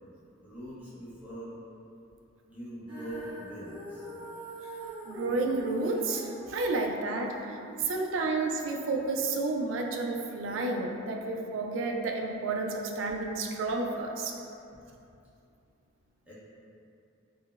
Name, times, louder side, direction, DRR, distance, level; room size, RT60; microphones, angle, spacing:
voice 1, 0.4-1.5 2.5-4.1 16.3-16.4, right 1 dB, 5° right, -10 dB, 0.7 m, -42 dB
Female singing, 2.9-9.1, equal, 30° right, 1.4 m, -44 dB
voice 2, 5.1-14.3, right 3 dB, 70° right, 1 dB, 0.3 m, -31 dB
3.8 x 2.1 x 2.3 m, 2.6 s
head